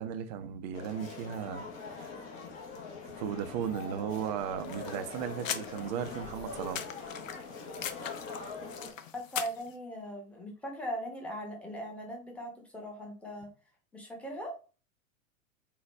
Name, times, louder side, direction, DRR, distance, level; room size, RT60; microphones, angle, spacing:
voice 1, 0.0-1.7 1.9-2.3 3.2-6.9, right 8 dB, 35° right, 0.5 m, -36 dB
sound 1, 0.7-8.9, left 4 dB, 30° left, 0.9 m, -43 dB
sound 2, 4.6-9.7, left 8 dB, 65° left, 0.6 m, -41 dB
voice 2, 9.1-13.5 13.9-14.5, equal, 5° left, 1.0 m, -39 dB
4.0 x 2.3 x 3.1 m
figure-of-eight pair, 95°, 43 cm